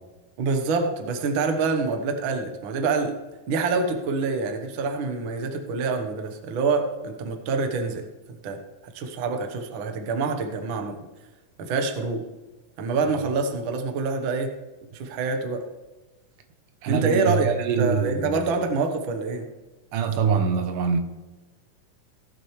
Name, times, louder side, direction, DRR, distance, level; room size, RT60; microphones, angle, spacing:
voice 1, 0.4-3.2 3.5-8.0 8.4-11.0 11.6-12.2 12.8-14.5 14.9-15.6 16.9-19.5, right 4 dB, 90° right, 1.1 m, -26 dB
voice 2, 16.8-18.4 19.9-21.0, right 6 dB, 70° right, 2.3 m, -24 dB
18.5 x 7.6 x 3.2 m
omnidirectional pair, 4.1 m